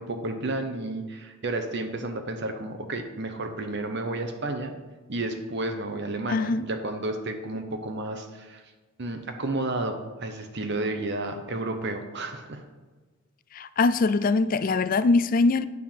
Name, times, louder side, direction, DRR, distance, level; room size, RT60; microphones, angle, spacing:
voice 1, 0.0-4.7 5.1-8.6 9.0-12.6, right 2 dB, 55° right, 6 dB, 0.9 m, -31 dB
voice 2, 6.3-6.7 13.5-15.7, left 3 dB, 40° left, 14 dB, 0.4 m, -22 dB
9.4 x 4.6 x 7.3 m, 1.3 s
head